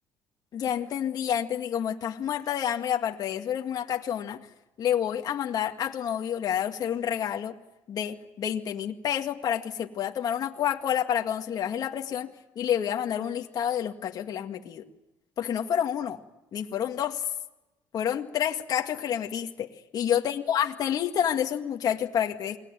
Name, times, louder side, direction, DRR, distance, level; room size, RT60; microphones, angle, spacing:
voice 1, 0.5-4.4 4.8-7.5 7.9-14.9 15.4-16.2 16.5-17.2 17.9-19.7 19.9-22.6, left 9 dB, 50° left, 3 dB, 2.0 m, -29 dB
28.5 x 20.5 x 9.1 m, 0.97 s
cardioid pair, 110°, 8 cm